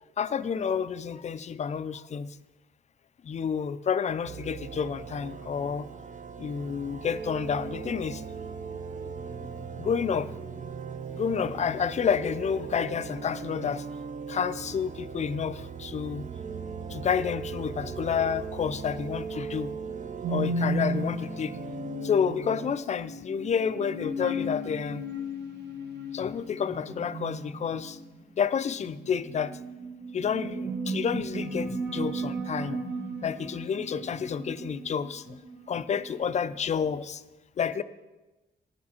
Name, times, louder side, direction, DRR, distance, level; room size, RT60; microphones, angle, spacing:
voice 1, 0.2-2.3 3.3-5.9 6.4-8.2 9.8-10.3 11.1-13.8 14.3-16.2 16.9-19.7 20.3-21.5 22.0-25.0 26.1-28.0 28.4-29.5 30.1-32.8 33.2-35.2 35.7-37.2 37.6-37.8, left 7 dB, 40° left, 14 dB, 0.4 m, -29 dB
sound 1, 4.2-22.8, right 6 dB, 40° right, 0.5 m, -39 dB
sound 2, 20.2-36.9, right 1 dB, 65° right, 1.4 m, -35 dB
10.0 x 8.6 x 4.3 m, 1.1 s
wide cardioid pair, 155°, 19 cm